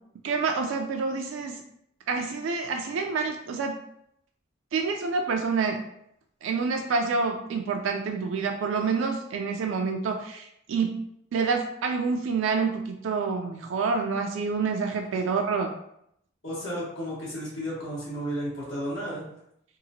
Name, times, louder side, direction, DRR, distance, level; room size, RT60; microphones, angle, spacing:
voice 1, 0.2-1.6 2.1-3.8 4.7-5.8 6.4-11.0 11.3-15.7, right 4 dB, 70° right, 3 dB, 0.3 m, -27 dB
voice 2, 16.4-19.3, equal, 80° left, -8 dB, 1.2 m, -33 dB
2.9 x 2.4 x 2.6 m, 0.75 s
head